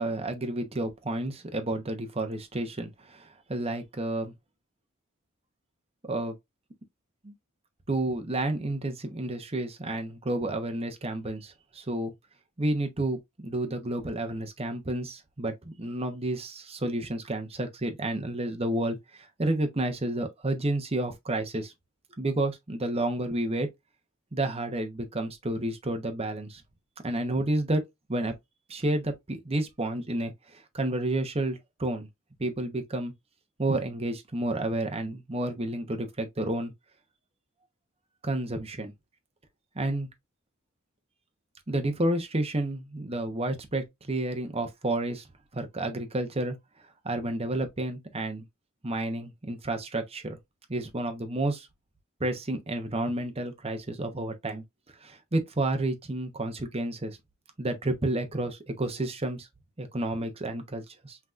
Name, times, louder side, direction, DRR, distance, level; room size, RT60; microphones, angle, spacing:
voice 1, 0.0-4.3 6.0-6.3 7.2-7.3 7.9-12.1 12.6-21.7 22.2-23.7 24.3-26.6 27.0-27.8 28.1-28.3 28.7-32.1 32.4-33.1 33.6-36.7 38.2-38.9 39.7-40.1 41.7-45.3 45.5-46.6 47.0-48.4 48.8-50.4 50.7-51.7 52.2-54.6 55.0-57.2 57.6-59.5 59.8-61.2, right 1 dB, 30° right, 1.0 m, -30 dB
5.9 x 3.0 x 2.4 m
head